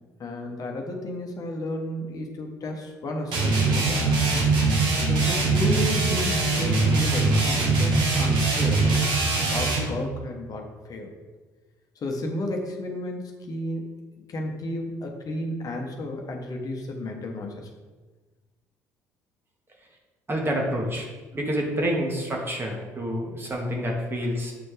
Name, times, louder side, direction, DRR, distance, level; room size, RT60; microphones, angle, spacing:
voice 1, 0.2-4.1 5.1-8.9 9.4-11.1 11.9-13.9 14.2-17.7, left 1 dB, 45° left, 2 dB, 1.2 m, -32 dB
sound 1, 3.3-9.9, right 3 dB, 60° right, 1.5 m, -22 dB
voice 2, 20.3-21.1 21.3-24.5, equal, 25° right, 0 dB, 1.8 m, -28 dB
7.9 x 4.3 x 3.4 m, 1.3 s
hypercardioid pair, 55°, 9 cm